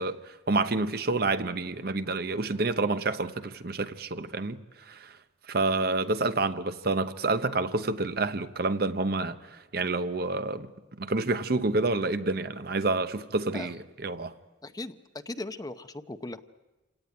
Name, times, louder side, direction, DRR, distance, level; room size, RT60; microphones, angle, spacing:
voice 1, 0.0-4.6 4.9-5.1 5.5-10.7 11.0-14.3, right 3 dB, 60° right, 0.9 m, -28 dB
voice 2, 14.6-15.0 15.3-16.4, left 2 dB, 20° left, 0.8 m, -38 dB
27.5 x 18.0 x 9.4 m
head